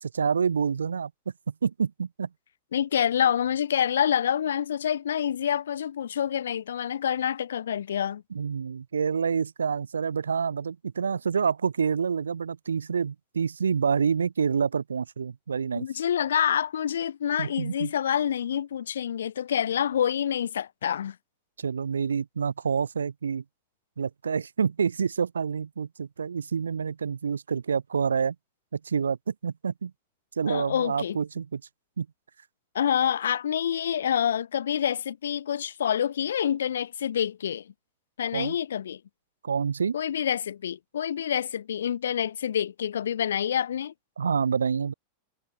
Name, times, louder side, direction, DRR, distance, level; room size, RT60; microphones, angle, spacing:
voice 1, 0.0-1.1 1.6-2.3 8.3-15.9 17.4-17.9 21.6-23.4 24.0-28.4 28.7-29.9 30.4-31.6 32.0-32.1 38.3-38.6 39.4-40.0 44.2-44.9, right 6 dB, 70° right, 1.9 m, -27 dB
voice 2, 2.7-8.2 15.8-21.2 30.5-31.2 32.7-37.7 38.2-39.0 39.9-43.9, left 9 dB, 65° left, 0.6 m, -27 dB
figure-of-eight pair, 90°, 0 cm